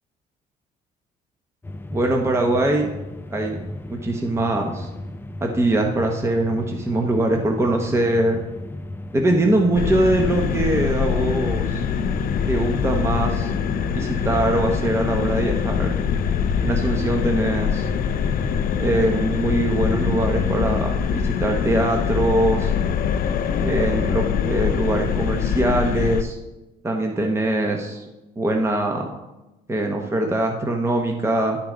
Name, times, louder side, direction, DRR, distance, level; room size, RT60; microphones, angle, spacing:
sound 1, 1.6-20.9, left 1 dB, 10° left, 0.5 m, -35 dB
voice 1, 1.9-2.9 3.3-3.6 3.9-4.9 5.4-8.4 9.1-11.9 12.5-13.5 13.9-15.9 16.6-17.9 18.8-22.7 23.6-26.4 26.8-28.0 28.4-29.1 29.7-31.6, right 1 dB, 15° right, 2 dB, 1.0 m, -22 dB
sound 2, 9.7-26.2, left 7 dB, 60° left, 0.6 m, -23 dB
11.5 x 5.7 x 3.9 m, 1.0 s
cardioid pair, 110°, 17 cm